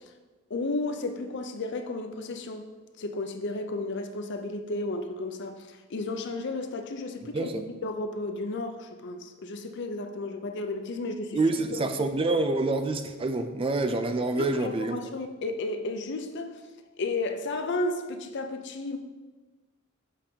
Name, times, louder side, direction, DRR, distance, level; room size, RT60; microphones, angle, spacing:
voice 1, 0.5-2.6 3.0-11.4 11.7-11.8 14.4-16.6 17.0-19.0, left 2 dB, 55° left, 0.5 m, -33 dB
voice 2, 7.3-7.6 11.3-15.1, right 2 dB, 25° right, 0.3 m, -27 dB
7.3 x 5.2 x 2.8 m
head